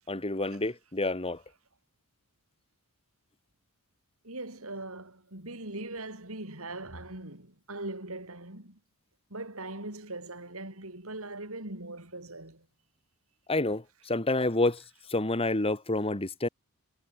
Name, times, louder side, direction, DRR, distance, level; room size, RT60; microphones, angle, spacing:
voice 1, 0.1-1.4 13.5-14.8 15.1-16.5, left 2 dB, 25° left, 1.9 m, -28 dB
voice 2, 4.2-8.8 9.3-12.6, right 2 dB, 65° right, 6.8 m, -40 dB
head